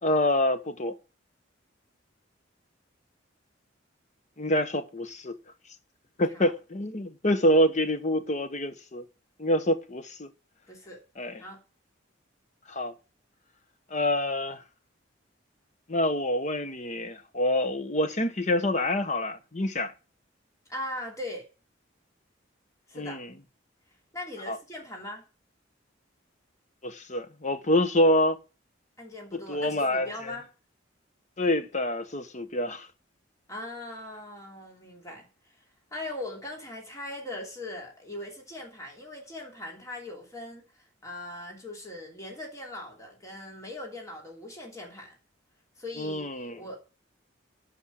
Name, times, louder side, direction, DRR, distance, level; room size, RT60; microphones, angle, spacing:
voice 1, 0.0-1.0 4.4-5.4 6.2-9.0 9.4-10.3 11.2-11.4 12.7-12.9 13.9-14.6 15.9-19.9 22.9-23.3 24.5-24.6 26.8-28.4 29.3-30.4 31.4-32.9 46.0-46.6, left 1 dB, 40° left, 1.1 m, -26 dB
voice 2, 10.7-11.0 11.4-11.6 20.7-21.5 22.9-23.2 24.1-25.2 29.0-30.5 33.5-35.3 35.9-40.6 41.0-45.1 45.8-46.8, left 1 dB, 15° left, 3.0 m, -40 dB
11.5 x 5.5 x 6.4 m
head